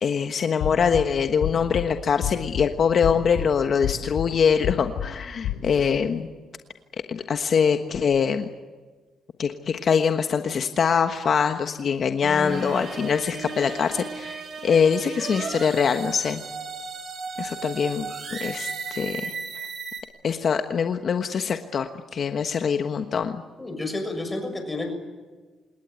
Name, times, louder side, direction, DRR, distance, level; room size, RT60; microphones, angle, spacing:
voice 1, 0.0-6.3 7.1-8.4 9.4-16.4 17.4-19.3 20.2-23.4, left 6 dB, 55° left, 7 dB, 1.3 m, -23 dB
sound 1, 0.6-1.0 1.4-1.8 2.2-2.6 3.0-3.4 3.8-4.3 4.6-5.1 5.4-5.6, left 11 dB, 90° left, 5.2 m, -28 dB
sound 2, 12.2-20.0, right 4 dB, 55° right, 4.8 m, -35 dB
voice 2, 23.6-24.9, left 2 dB, 15° left, 6 dB, 6.6 m, -30 dB
28.0 x 18.5 x 9.4 m, 1.3 s
cardioid pair, 90°, 0 cm